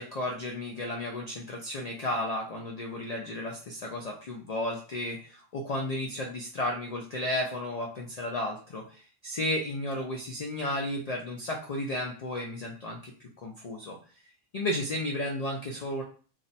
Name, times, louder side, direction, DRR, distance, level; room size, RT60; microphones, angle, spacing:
voice 1, 0.0-14.0 14.5-16.0, left 1 dB, 70° left, 0 dB, 0.3 m, -33 dB
2.5 x 2.1 x 3.9 m, 0.41 s
omnidirectional pair, 1.2 m